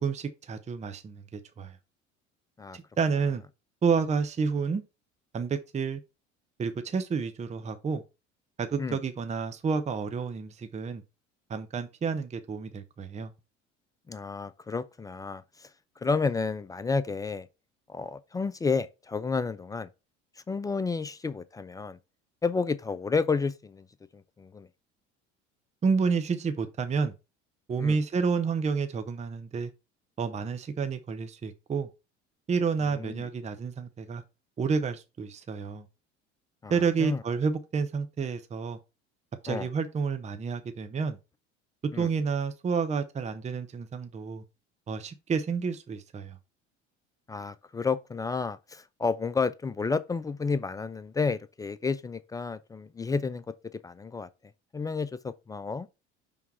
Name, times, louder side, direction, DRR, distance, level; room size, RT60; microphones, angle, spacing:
voice 1, 0.0-1.8 2.7-3.4 3.8-4.8 5.3-6.0 6.6-8.0 8.6-11.0 11.5-13.3 25.8-27.1 27.7-29.7 30.2-31.9 32.5-34.2 34.6-35.9 36.7-38.8 39.4-41.2 41.9-44.4 44.9-46.4, right 5 dB, 20° right, 0.7 m, -30 dB
voice 2, 14.1-15.7 16.0-17.5 17.9-19.9 20.5-22.0 22.4-23.9 24.1-24.7 27.8-28.0 32.9-33.3 36.6-36.7 37.0-37.2 39.5-39.7 41.9-42.1 47.3-54.3 54.7-55.9, left 4 dB, 10° left, 0.3 m, -31 dB
5.8 x 3.5 x 4.6 m
figure-of-eight pair, 65°, 36 cm